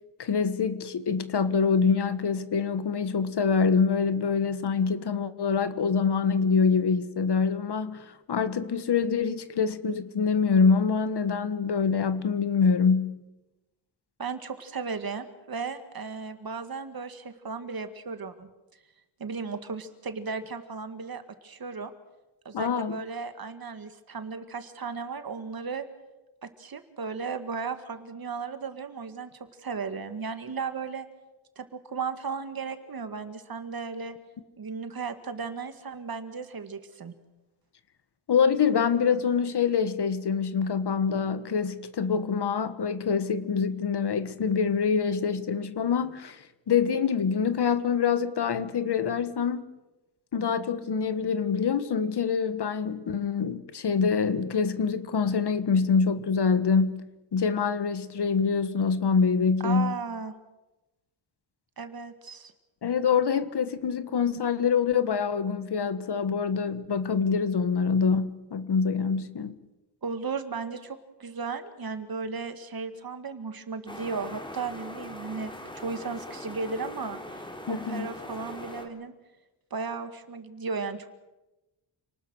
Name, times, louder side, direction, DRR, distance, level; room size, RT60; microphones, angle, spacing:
voice 1, 0.2-13.2 22.5-22.9 38.3-49.6 50.3-57.1 57.3-59.9 62.8-69.6 77.7-78.1, left 6 dB, 55° left, 1.5 m, -25 dB
voice 2, 14.2-18.5 19.2-21.9 22.5-25.9 26.4-31.1 31.6-34.1 34.6-37.1 59.6-60.3 61.8-62.5 70.0-77.4 77.7-79.1 79.7-81.1, right 5 dB, 50° right, 2.1 m, -35 dB
sound 1, 73.9-78.9, left 1 dB, 10° left, 3.4 m, -41 dB
28.5 x 19.5 x 6.4 m
wide cardioid pair, 110°, 47 cm